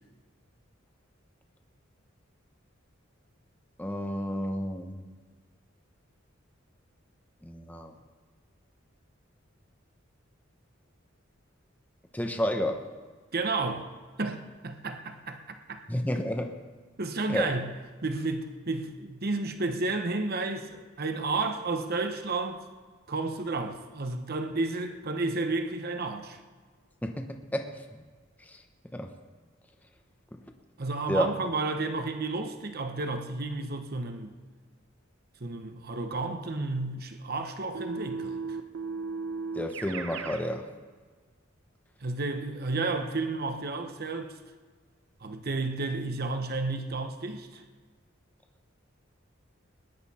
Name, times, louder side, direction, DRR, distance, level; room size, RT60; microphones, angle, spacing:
voice 1, 3.8-5.0 7.4-7.9 12.1-12.8 15.9-16.6 17.3-17.5 27.0-27.8 28.9-29.1 30.3-30.4 31.1-31.3 39.5-40.7, equal, 10° left, 0.9 m, -30 dB
voice 2, 13.3-13.9 14.2-15.8 17.0-17.7 18.0-22.6 23.1-26.4 30.8-34.4 35.4-38.6 42.0-44.3 45.2-47.6, right 3 dB, 50° right, 1.0 m, -32 dB
Keyboard (musical), 37.7-40.5, right 4 dB, 80° right, 0.9 m, -35 dB
19.5 x 10.5 x 4.3 m
head